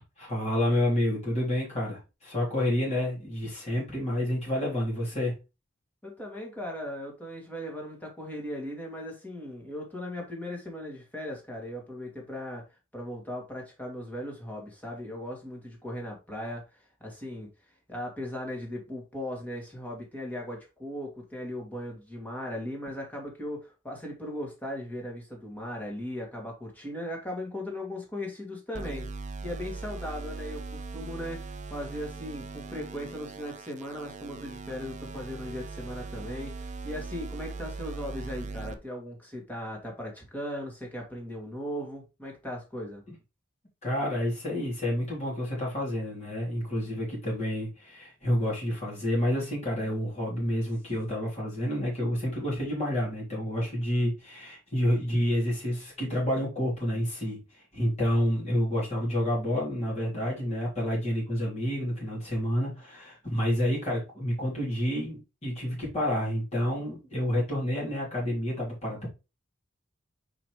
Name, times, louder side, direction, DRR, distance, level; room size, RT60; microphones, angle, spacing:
voice 1, 0.2-5.4 43.8-69.1, equal, 35° left, 3.4 m, -29 dB
voice 2, 6.0-12.6 12.9-17.5 17.9-29.1 29.4-43.0, left 1 dB, 10° left, 2.3 m, -38 dB
sound 1, 28.7-38.7, right 3 dB, 40° right, 0.6 m, -40 dB
5.8 x 5.1 x 3.2 m
head